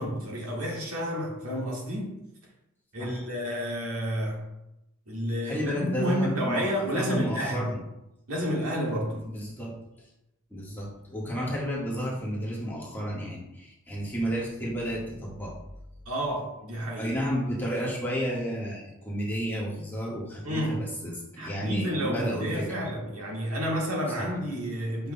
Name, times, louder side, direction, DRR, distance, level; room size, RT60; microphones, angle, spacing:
voice 1, 0.0-2.1 2.9-4.4 5.1-7.6 8.3-9.2 16.0-17.1 20.4-20.9 21.4-25.1, equal, 85° right, -2 dB, 1.7 m, -30 dB
voice 2, 5.4-7.8 9.1-9.7 10.5-15.6 17.0-22.9 24.2-24.3, equal, 10° left, -5 dB, 1.4 m, -32 dB
7.8 x 5.4 x 2.2 m, 0.89 s
head